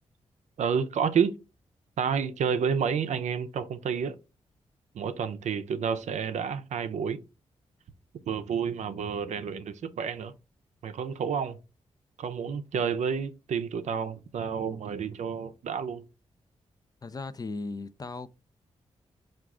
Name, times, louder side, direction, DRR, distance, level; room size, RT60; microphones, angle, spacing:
voice 1, 0.6-1.3 2.0-4.2 4.9-7.2 8.3-10.3 10.8-11.6 12.2-16.0, right 7 dB, 75° right, 0.5 m, -30 dB
voice 2, 17.0-18.3, left 3 dB, 30° left, 0.4 m, -37 dB
4.7 x 2.4 x 3.6 m
supercardioid pair, 50°, 12 cm